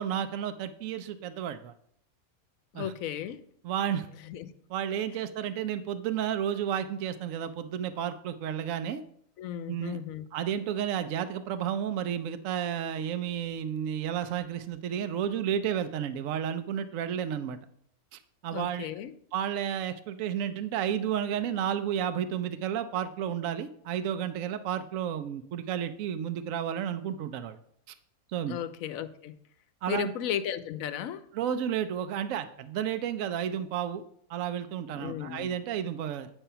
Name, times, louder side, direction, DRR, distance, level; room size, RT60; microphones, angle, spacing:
voice 1, 0.0-1.7 2.7-2.9 3.6-4.1 4.7-9.0 9.7-10.0 10.3-17.6 18.1-18.9 19.3-27.6 27.9-28.0 28.3-28.6 29.8-30.1 31.3-34.0 34.3-36.3, right 9 dB, 70° right, 0.9 m, -32 dB
voice 2, 2.7-3.4 4.2-4.5 9.4-10.2 18.5-19.1 28.5-29.4 29.9-31.2 34.9-35.5, left 9 dB, 70° left, 1.0 m, -35 dB
8.9 x 5.5 x 5.6 m
omnidirectional pair, 1.6 m